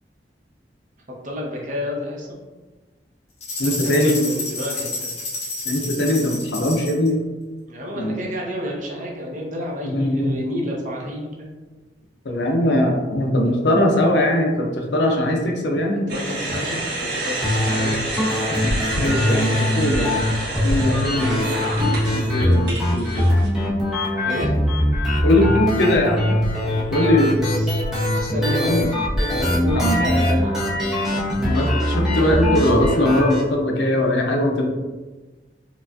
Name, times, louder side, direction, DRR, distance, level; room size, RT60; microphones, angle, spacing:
voice 1, 1.1-2.4 3.8-5.1 7.7-11.5 15.9-18.3 24.2-24.5 26.6-27.8 28.2-30.7 31.1-31.2, equal, 45° right, -3 dB, 0.9 m, -30 dB
sound 1, 3.4-7.1, left 2 dB, 40° left, 1.0 m, -30 dB
voice 2, 3.6-4.2 5.7-7.2 8.0-8.1 9.8-10.4 12.2-16.0 18.5-18.7 19.0-20.2 20.6-21.6 22.1-23.4 25.2-26.2 26.9-27.4 28.6-28.9 29.7-30.0 31.4-34.7, left 1 dB, 75° left, 1 dB, 0.6 m, -20 dB
sound 2, 16.1-23.5, right 2 dB, 70° right, 1.3 m, -29 dB
sound 3, 17.4-33.4, left 1 dB, 5° right, 0.8 m, -22 dB
4.7 x 2.4 x 2.5 m, 1.2 s
head